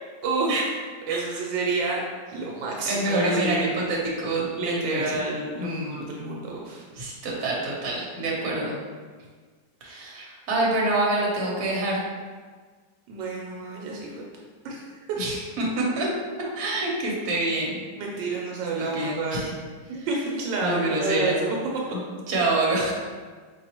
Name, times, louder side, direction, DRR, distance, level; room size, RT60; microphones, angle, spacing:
voice 1, 0.2-0.5 1.1-2.0 2.3-3.9 4.6-6.8 13.1-14.1 14.6-15.0 18.0-19.6 19.9-21.6, right 3 dB, 80° right, -2 dB, 1.3 m, -29 dB
voice 2, 1.1-1.4 2.8-5.2 5.6-6.1 6.9-8.8 9.8-12.0 15.2-16.1 16.6-17.8 18.8-19.5 19.9-20.1 20.6-21.4 22.3-22.9, right 2 dB, 60° right, -4 dB, 1.3 m, -26 dB
4.0 x 3.1 x 2.9 m, 1.5 s
omnidirectional pair, 2.0 m